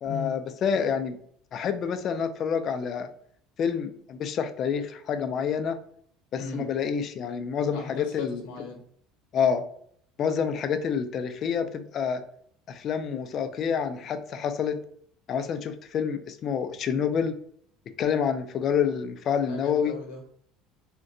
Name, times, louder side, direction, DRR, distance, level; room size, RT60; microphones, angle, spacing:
voice 1, 0.0-1.2 1.5-3.1 3.6-5.8 6.3-8.4 9.3-9.6 10.2-12.2 12.7-14.8 15.3-17.4 18.0-20.0, left 7 dB, 45° left, 9 dB, 0.3 m, -28 dB
voice 2, 7.7-8.8 19.4-20.2, left 5 dB, 85° left, 2 dB, 0.8 m, -37 dB
3.6 x 2.2 x 2.6 m, 0.64 s
cardioid pair, 120°, 0 cm